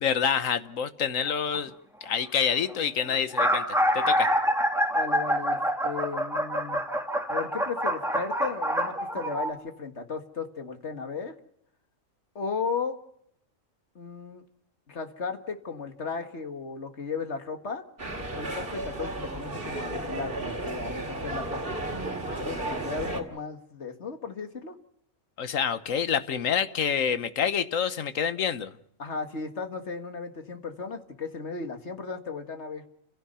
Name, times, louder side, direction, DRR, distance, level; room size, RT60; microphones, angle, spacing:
voice 1, 0.0-1.7 2.0-4.3 25.4-28.7, left 7 dB, 90° left, 12 dB, 1.5 m, -27 dB
sound 1, 1.3-1.6 2.4-2.5 2.7-2.8 3.1-9.5, equal, ahead, 2.4 m, -26 dB
voice 2, 4.9-6.8 7.3-11.4 12.4-13.0 14.0-14.4 14.9-17.8 18.3-21.7 22.4-24.8 29.0-32.8, left 5 dB, 60° left, 7 dB, 2.1 m, -35 dB
sound 2, 18.0-23.2, right 2 dB, 45° right, 2.7 m, -33 dB
29.5 x 16.0 x 5.6 m, 0.70 s
omnidirectional pair, 1.3 m